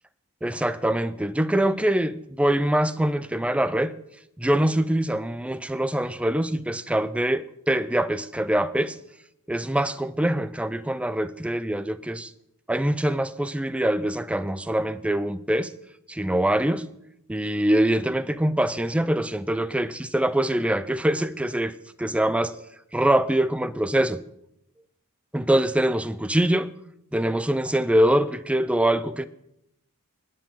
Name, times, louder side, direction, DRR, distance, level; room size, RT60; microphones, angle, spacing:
voice 1, 0.4-3.9 4.4-9.0 9.5-12.3 12.7-15.7 16.1-16.9 17.3-21.7 22.0-22.6 22.9-24.2 25.3-26.7 27.1-29.2, right 1 dB, 5° right, 0.4 m, -24 dB
25.0 x 9.9 x 3.8 m
head